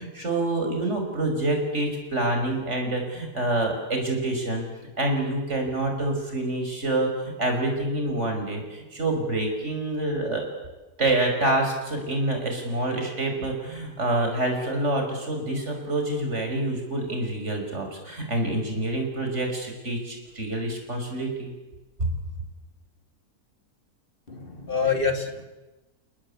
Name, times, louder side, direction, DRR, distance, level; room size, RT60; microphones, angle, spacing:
voice 1, 0.0-4.7 5.0-10.5 11.0-21.5, right 2 dB, 50° right, 3 dB, 5.9 m, -27 dB
voice 2, 24.3-25.5, left 5 dB, 35° left, 6 dB, 2.6 m, -26 dB
30.0 x 19.5 x 8.7 m, 1.1 s
omnidirectional pair, 1.6 m